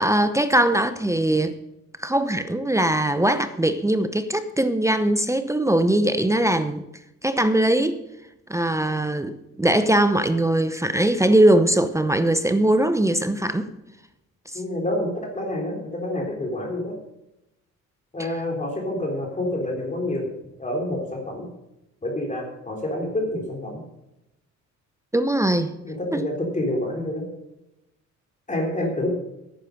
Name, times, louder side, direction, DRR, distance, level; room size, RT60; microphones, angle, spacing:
voice 1, 0.0-1.6 2.0-6.8 7.2-8.0 8.5-13.7 14.5-14.6 25.1-25.8 26.1-26.2, right 1 dB, 10° right, 11 dB, 0.8 m, -21 dB
voice 2, 14.5-16.9 18.1-20.3 20.6-21.5 22.0-23.8 25.8-27.2 28.5-29.1, left 1 dB, 25° left, -1 dB, 3.6 m, -28 dB
10.5 x 9.1 x 6.6 m, 0.89 s
cardioid pair, 90°, 30 cm